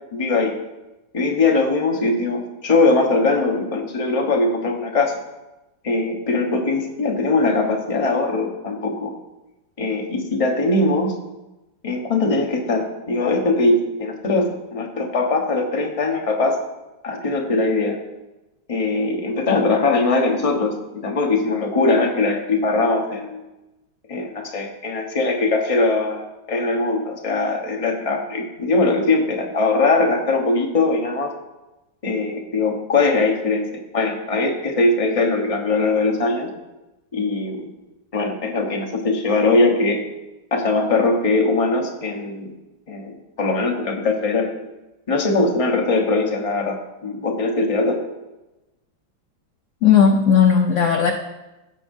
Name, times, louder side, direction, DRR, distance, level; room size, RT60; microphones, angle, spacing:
voice 1, 0.1-0.5 1.1-5.1 5.8-9.1 9.8-11.2 11.8-16.6 17.0-18.0 18.7-23.4 24.1-26.2 26.5-31.3 32.0-33.7 33.9-36.5 37.1-37.7 38.1-40.0 40.5-42.5 42.9-44.5 45.1-48.0, left 3 dB, 25° left, 2 dB, 0.8 m, -21 dB
voice 2, 49.8-51.1, left 7 dB, 70° left, 3 dB, 0.7 m, -15 dB
15.0 x 7.9 x 2.6 m, 1.0 s
omnidirectional pair, 2.1 m